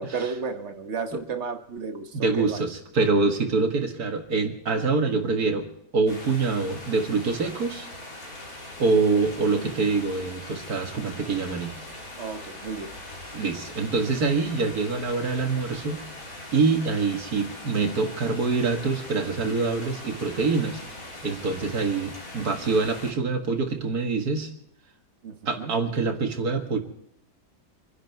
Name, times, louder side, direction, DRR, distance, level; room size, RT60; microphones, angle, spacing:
voice 1, 0.0-2.6 12.2-12.9 25.2-25.7, right 5 dB, 45° right, 7 dB, 1.4 m, -33 dB
voice 2, 2.1-5.6 5.9-7.9 8.8-11.7 13.3-16.0 16.5-20.8 21.2-24.5 25.5-26.8, right 4 dB, 60° right, 4 dB, 2.2 m, -25 dB
sound 1, 6.1-23.1, left 1 dB, 55° left, 3.6 m, -41 dB
26.5 x 11.0 x 4.6 m, 0.74 s
omnidirectional pair, 1.8 m